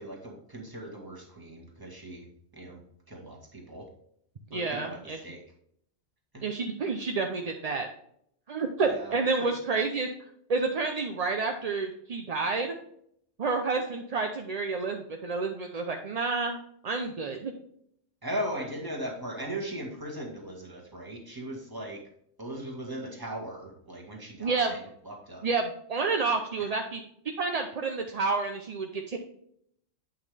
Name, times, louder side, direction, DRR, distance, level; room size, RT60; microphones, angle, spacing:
voice 1, 0.0-2.3 2.5-2.8 3.1-3.9 4.5-5.4 6.3-6.4 8.8-9.2 9.4-9.5 18.2-22.0 22.4-25.5, right 1 dB, 15° right, -1 dB, 1.7 m, -38 dB
voice 2, 4.5-5.2 6.4-7.9 8.5-10.1 10.5-12.7 13.4-16.6 16.8-17.5 24.4-24.7 25.4-27.0 27.4-29.2, right 4 dB, 45° right, 3 dB, 0.5 m, -29 dB
8.5 x 5.7 x 3.3 m, 0.70 s
omnidirectional pair, 1.3 m